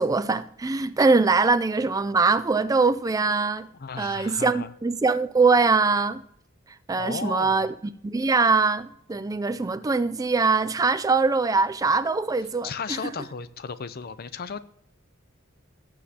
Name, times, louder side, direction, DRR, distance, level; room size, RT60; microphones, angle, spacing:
voice 1, 0.0-3.7 4.0-6.2 6.9-7.7 8.0-13.0, right 4 dB, 15° right, 0.3 m, -22 dB
voice 2, 3.8-4.7 7.0-7.7 12.6-14.6, left 6 dB, 50° left, 0.5 m, -34 dB
18.5 x 7.3 x 2.8 m
head